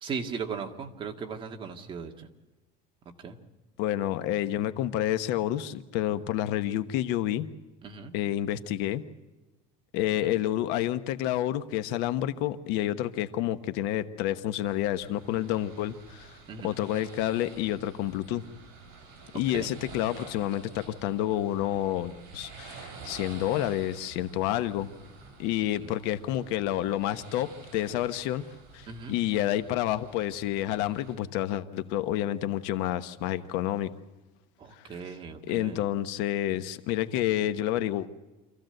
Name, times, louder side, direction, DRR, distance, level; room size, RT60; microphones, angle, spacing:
voice 1, 0.0-2.3 3.2-3.4 7.8-8.1 10.1-10.3 16.5-16.8 19.5-19.7 25.8-26.1 28.9-29.1 34.6-35.9, right 6 dB, 30° right, 3 dB, 1.9 m, -38 dB
voice 2, 3.8-7.5 8.1-9.0 9.9-18.4 19.3-24.9 25.4-28.4 28.7-33.9 34.8-35.0 35.5-38.2, left 13 dB, 70° left, 11 dB, 1.2 m, -29 dB
sound 1, 14.6-31.2, right 5 dB, 60° right, 6.3 m, -49 dB
26.5 x 15.0 x 7.9 m, 1.2 s
cardioid pair, 155°, 18 cm